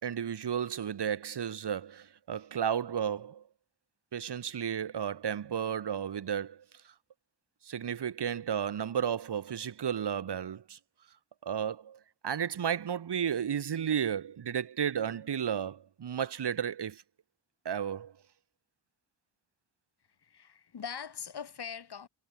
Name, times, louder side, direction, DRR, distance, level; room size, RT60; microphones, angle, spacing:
voice 1, 0.0-3.4 4.1-6.9 7.6-10.8 11.4-17.0 17.7-18.1, right 8 dB, 60° right, 2.2 m, -33 dB
voice 2, 20.2-22.1, left 7 dB, 55° left, 5.7 m, -42 dB
wide cardioid pair, 140°, 46 cm